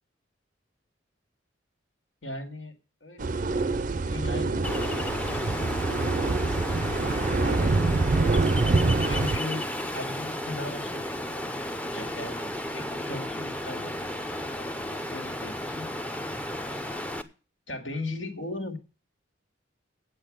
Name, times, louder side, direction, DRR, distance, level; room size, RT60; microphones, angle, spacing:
voice 1, 2.2-3.7 4.1-5.8 6.7-8.3 9.1-12.5 12.7-15.9 17.1-17.2 17.7-18.8, left 2 dB, 75° left, 5 dB, 2.4 m, -39 dB
sound 1, 3.2-9.4, right 3 dB, 40° right, 0.5 m, -26 dB
Ocean, 4.6-17.2, left 1 dB, 5° left, 0.6 m, -33 dB
8.7 x 8.3 x 7.4 m, 0.36 s
head